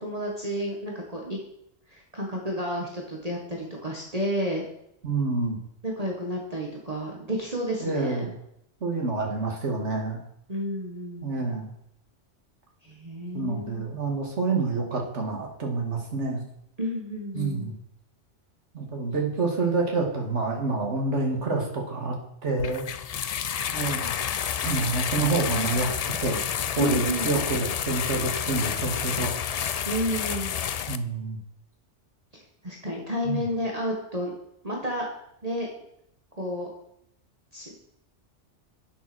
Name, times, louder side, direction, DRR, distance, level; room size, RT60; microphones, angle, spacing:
voice 1, 0.0-1.4 1.9-4.6 5.8-8.2 10.5-11.6 12.8-13.8 16.8-17.7 26.8-27.3 29.9-30.5 32.3-34.3 34.6-35.1 35.4-35.7 36.4-36.7 37.5-37.8, equal, 30° right, -1 dB, 1.7 m, -31 dB
voice 2, 5.0-5.6 7.8-8.3 8.8-10.2 11.2-11.7 13.3-16.4 17.3-17.8 18.7-22.2 22.4-22.9 23.7-24.2 24.6-26.4 26.8-29.4 30.9-31.4 33.2-33.4, right 3 dB, 70° right, 0 dB, 2.3 m, -28 dB
sound 1, 22.6-31.0, left 8 dB, 80° left, 0.3 m, -29 dB
9.3 x 7.0 x 6.2 m, 0.75 s
omnidirectional pair, 1.2 m